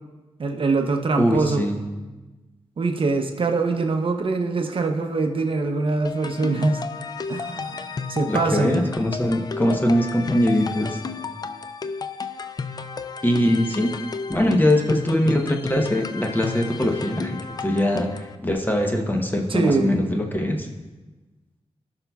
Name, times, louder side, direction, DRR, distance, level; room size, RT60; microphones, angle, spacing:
voice 1, 0.4-1.7 2.8-6.8 7.3-8.8 19.5-20.0, right 3 dB, 55° right, 4 dB, 0.7 m, -23 dB
voice 2, 1.2-1.8 8.3-11.0 13.2-14.0 14.3-20.7, left 1 dB, 15° left, 3 dB, 0.8 m, -22 dB
sound 1, 6.0-18.3, left 5 dB, 35° left, 0.3 m, -33 dB
16.0 x 5.7 x 2.3 m, 1.2 s
wide cardioid pair, 125°, 11 cm